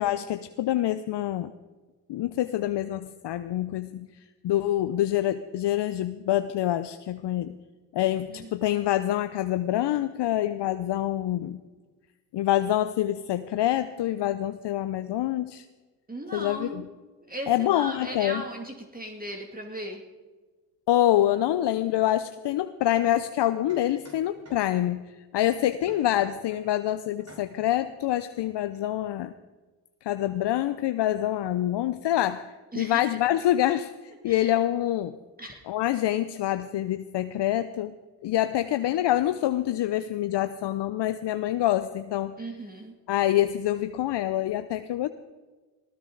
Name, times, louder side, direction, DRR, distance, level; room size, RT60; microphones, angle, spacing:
voice 1, 0.0-1.5 2.1-4.1 4.4-7.5 7.9-11.6 12.3-15.6 16.3-16.9 17.5-18.4 20.9-25.0 25.3-29.3 30.0-32.5 32.8-35.2 35.7-37.9 38.2-42.4 43.1-45.1, left 13 dB, 65° left, 12 dB, 0.7 m, -26 dB
voice 2, 16.1-16.8 17.3-20.0 32.7-33.0 34.3-34.5 35.4-35.6 42.4-42.9, right 1 dB, 20° right, 1 dB, 2.4 m, -37 dB
sound 1, 22.9-23.0 23.7-25.0 25.8-26.7 27.2-27.8, right 1 dB, 35° right, 5.9 m, -53 dB
19.0 x 16.0 x 4.0 m, 1.3 s
supercardioid pair, 50°, 46 cm